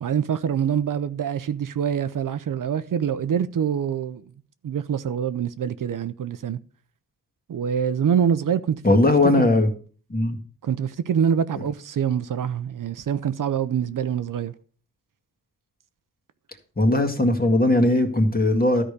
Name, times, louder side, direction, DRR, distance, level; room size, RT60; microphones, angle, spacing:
voice 1, 0.0-4.3 4.6-6.6 7.5-9.5 10.6-14.5, right 8 dB, 65° right, 0.7 m, -25 dB
voice 2, 8.8-9.7 10.1-10.4 16.8-18.8, left 2 dB, 25° left, 1.8 m, -19 dB
13.0 x 5.0 x 6.6 m
wide cardioid pair, 140°, 35 cm